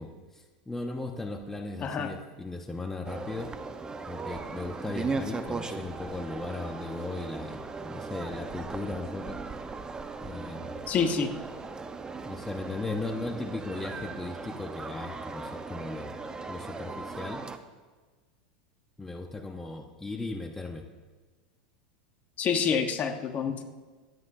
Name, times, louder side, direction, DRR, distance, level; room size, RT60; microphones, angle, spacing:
voice 1, 0.0-3.5 4.1-9.4 10.2-10.9 12.2-16.1 16.5-17.4 19.0-20.8, left 2 dB, 10° left, 4 dB, 1.0 m, -37 dB
voice 2, 1.8-2.1 10.9-11.3 22.4-23.6, left 6 dB, 35° left, 6 dB, 1.2 m, -27 dB
sound 1, 3.0-17.6, right 4 dB, 15° right, 0.9 m, -38 dB
25.0 x 9.7 x 2.7 m, 1.4 s
hypercardioid pair, 105°, 4 cm